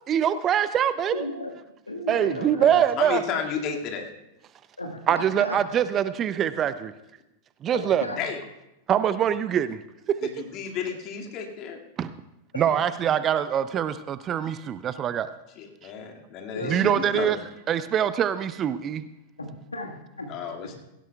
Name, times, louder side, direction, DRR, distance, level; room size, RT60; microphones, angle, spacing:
voice 1, 0.1-1.2 2.1-3.2 5.1-6.9 7.6-8.1 8.9-9.8 12.0-12.2 12.6-15.3 16.6-17.4 17.7-19.0, right 9 dB, 30° right, 14 dB, 0.5 m, -24 dB
voice 2, 1.1-1.5 1.9-2.8 4.8-5.6 7.7-8.2 12.5-12.6 16.5-17.3 19.4-20.3, left 1 dB, 80° left, 3 dB, 1.6 m, -34 dB
voice 3, 3.0-4.1 8.2-8.4 10.2-11.8 15.6-17.4 20.3-20.7, left 7 dB, 40° left, 1 dB, 2.1 m, -32 dB
17.0 x 17.0 x 2.3 m, 0.92 s
figure-of-eight pair, 90°, 0 cm